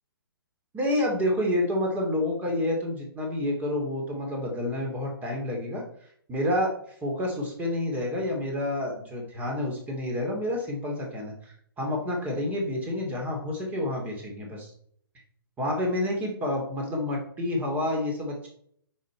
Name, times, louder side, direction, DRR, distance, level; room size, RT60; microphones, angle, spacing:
voice 1, 0.7-5.8 6.3-6.7 7.0-14.7 15.6-18.5, left 1 dB, 15° right, 0 dB, 2.5 m, -29 dB
9.2 x 5.9 x 4.5 m, 0.65 s
figure-of-eight pair, 125°, 13 cm